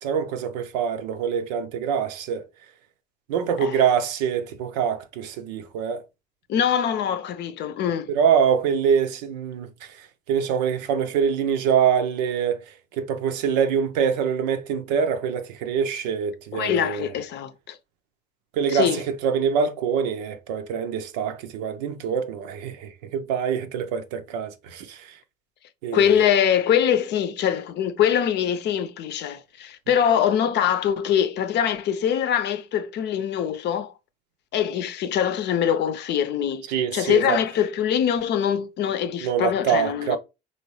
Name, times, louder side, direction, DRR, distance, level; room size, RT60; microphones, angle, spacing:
voice 1, 0.0-2.4 3.3-6.0 8.1-9.7 10.3-12.6 13.0-17.1 18.5-18.9 19.2-25.1 25.8-26.3 36.7-37.4 39.2-40.2, right 7 dB, 85° right, 0.7 m, -24 dB
voice 2, 6.5-8.1 16.5-17.8 18.7-19.0 25.9-33.9 34.5-36.7 36.9-40.2, left 9 dB, 55° left, 0.6 m, -23 dB
4.1 x 3.0 x 3.1 m
supercardioid pair, 75°, 21 cm